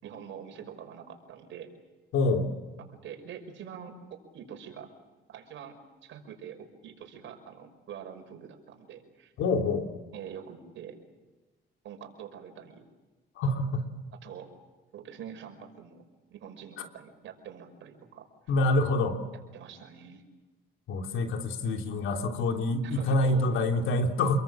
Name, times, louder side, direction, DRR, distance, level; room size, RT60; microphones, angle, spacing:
voice 1, 0.0-1.7 2.9-4.9 5.3-9.3 10.1-11.0 11.8-12.8 14.2-14.5 14.9-16.0 16.3-18.3 19.5-20.2 22.8-23.5, right 8 dB, 65° right, 5 dB, 5.5 m, -45 dB
voice 2, 2.1-2.5 9.4-9.9 13.4-13.9 16.8-16.9 18.5-19.2 20.9-24.4, left 2 dB, 75° left, 4 dB, 3.2 m, -26 dB
28.0 x 22.5 x 7.5 m, 1.2 s
cardioid pair, 110°, 21 cm